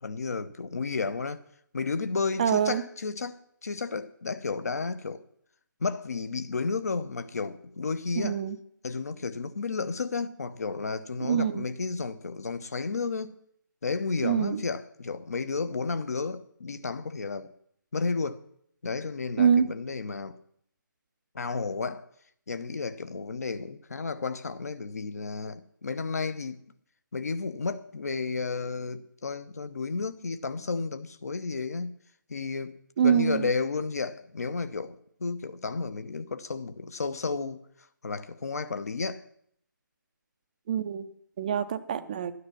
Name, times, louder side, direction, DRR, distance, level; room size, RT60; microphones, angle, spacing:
voice 1, 0.0-1.4 1.7-5.2 5.8-8.4 8.8-13.4 13.8-17.5 17.9-18.4 18.8-20.4 21.3-22.1 22.5-26.6 27.1-31.9 32.3-37.6 38.0-39.2, left 4 dB, 50° left, 0.9 m, -32 dB
voice 2, 2.4-2.8 8.2-8.6 11.2-11.7 14.2-14.6 19.4-19.7 33.0-33.5 40.7-41.1 41.4-42.3, right 8 dB, 25° right, 0.6 m, -25 dB
12.0 x 9.8 x 6.0 m
figure-of-eight pair, 150°, 11 cm